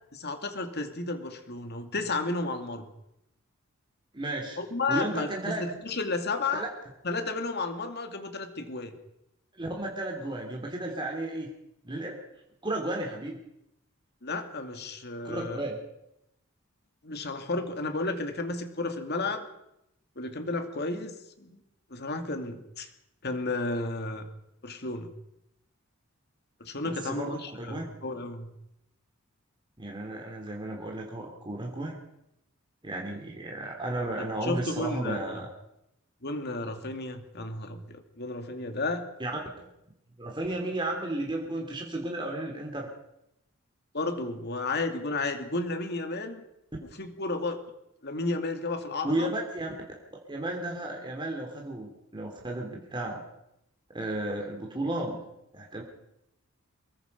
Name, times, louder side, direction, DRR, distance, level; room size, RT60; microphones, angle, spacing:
voice 1, 0.1-2.9 4.6-6.7 7.0-8.9 14.2-15.6 17.0-19.5 20.2-21.6 21.9-22.9 23.2-24.3 24.6-25.1 26.6-28.5 34.4-35.4 36.2-39.0 43.9-46.4 47.0-47.6 48.0-49.3, left 3 dB, 50° left, 6 dB, 2.6 m, -32 dB
voice 2, 4.1-4.6 4.9-5.6 6.6-6.7 9.6-11.5 11.8-12.2 12.6-13.4 15.2-15.8 26.8-27.9 29.8-32.0 32.8-35.5 39.2-39.3 40.2-42.9 49.0-49.7 50.3-53.2 53.9-55.2 55.5-55.8, right 1 dB, 20° right, 0 dB, 2.8 m, -33 dB
24.5 x 22.0 x 5.4 m, 0.84 s
head